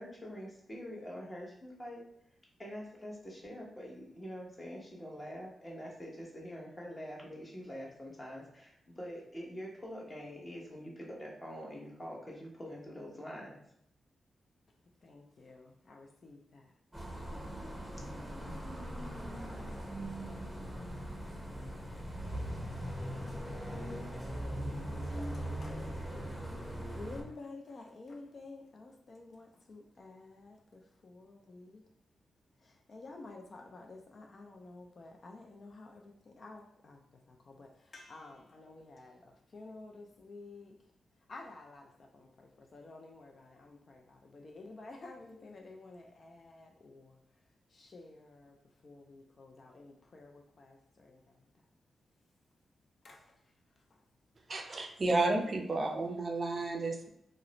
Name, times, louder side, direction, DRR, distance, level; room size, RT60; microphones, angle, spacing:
voice 1, 0.0-2.1 2.6-13.6, equal, 30° left, -3 dB, 0.9 m, -45 dB
voice 2, 15.0-16.6 17.3-17.6 24.3-26.6 27.0-31.8 32.9-37.0 37.3-40.7 41.3-41.9 42.1-47.1 47.7-48.5 48.8-51.2 53.0-53.2, left 3 dB, 55° left, 2 dB, 0.4 m, -51 dB
sound 1, 16.9-27.2, equal, ahead, 0.7 m, -40 dB
voice 3, 54.5-57.1, right 2 dB, 50° right, 3 dB, 0.4 m, -32 dB
2.3 x 2.0 x 2.9 m, 0.73 s
supercardioid pair, 40°, 0 cm